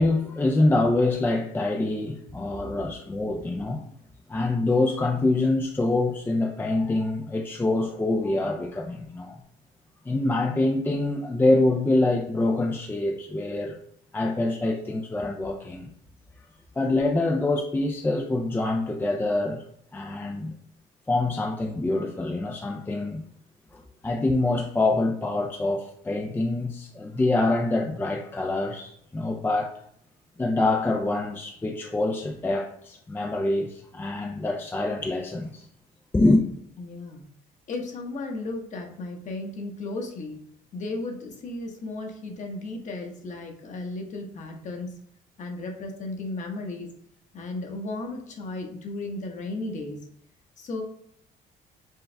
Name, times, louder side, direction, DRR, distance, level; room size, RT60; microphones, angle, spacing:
voice 1, 0.0-3.9 4.3-9.4 10.1-13.8 14.1-15.9 16.8-19.6 19.9-20.5 21.1-23.2 23.7-29.7 30.4-35.6 36.1-36.4, left 2 dB, 10° left, 0.4 m, -25 dB
voice 2, 36.8-37.2 37.7-40.4 40.7-44.9 45.4-46.9 47.3-50.0 50.6-50.8, left 2 dB, 45° left, 1.1 m, -34 dB
4.6 x 2.4 x 3.3 m
cardioid pair, 110°, 17 cm